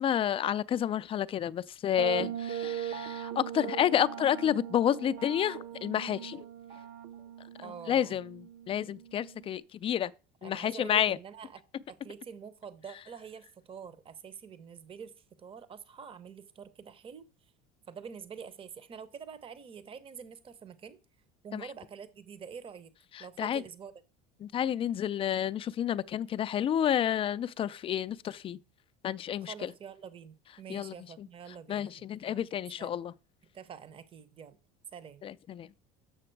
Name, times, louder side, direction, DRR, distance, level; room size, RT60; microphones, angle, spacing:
voice 1, 0.0-6.4 7.6-10.1 10.4-11.2 21.5-21.7 23.1-23.6 24.4-28.6 29.0-29.7 30.7-31.3 31.7-33.1 35.2-35.7, left 10 dB, 25° left, 0.4 m, -30 dB
sound 1, 2.0-9.6, right 9 dB, 75° right, 1.1 m, -40 dB
voice 2, 7.6-8.2 10.4-11.6 11.9-15.1 15.4-17.3 17.9-21.0 21.4-22.9 23.2-23.9 29.4-32.4 32.8-33.0 33.5-34.6 34.9-35.2, right 7 dB, 25° right, 0.7 m, -46 dB
7.9 x 5.9 x 4.5 m
cardioid pair, 130°, 20 cm